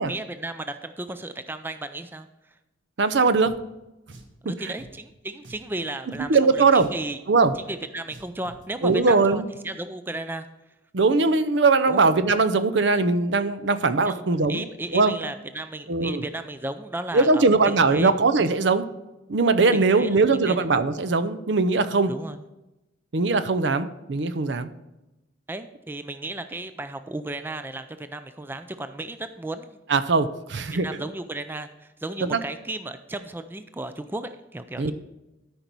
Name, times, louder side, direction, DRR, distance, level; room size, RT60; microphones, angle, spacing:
voice 1, 0.0-2.3 4.6-7.2 7.6-10.5 11.9-12.0 14.1-14.2 14.5-18.1 19.7-20.2 20.5-20.7 22.1-22.4 25.5-29.7 30.8-34.9, right 2 dB, 10° right, 10 dB, 0.4 m, -34 dB
voice 2, 3.0-3.5 4.4-4.7 6.2-6.9 7.3-7.5 8.8-9.4 10.9-14.6 14.9-15.1 15.9-16.2 17.1-18.9 19.3-22.1 23.1-24.7 29.9-30.9 32.2-32.4 34.8-34.9, right 3 dB, 65° right, 11 dB, 0.6 m, -20 dB
Drum, 3.4-3.6 4.1-4.4 4.8-4.9 5.4-5.7 6.1-6.3 6.8-7.0 7.4-7.6 8.1-8.6, right 1 dB, 80° right, 1.4 m, -46 dB
13.0 x 5.3 x 4.5 m, 0.99 s
head